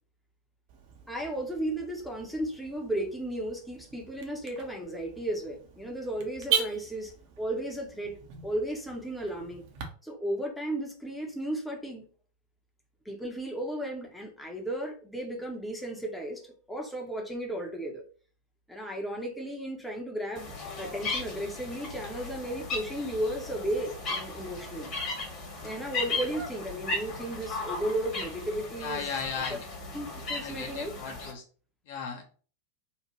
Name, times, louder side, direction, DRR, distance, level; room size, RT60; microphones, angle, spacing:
Car / Alarm, 0.7-9.9, right 7 dB, 45° right, 0.6 m, -38 dB
voice 1, 1.1-7.1 7.4-8.2 8.4-9.6 10.0-12.1 13.1-16.4 16.7-18.0 18.7-24.9 25.6-29.1 29.5-29.6 29.9-30.9, right 1 dB, ahead, 0.6 m, -34 dB
sound 1, 20.4-31.3, left 3 dB, 35° left, 1.0 m, -36 dB
voice 2, 28.8-29.7 30.4-31.4 31.9-32.2, left 6 dB, 55° left, 0.6 m, -36 dB
2.9 x 2.1 x 2.9 m
figure-of-eight pair, 90°, 0 cm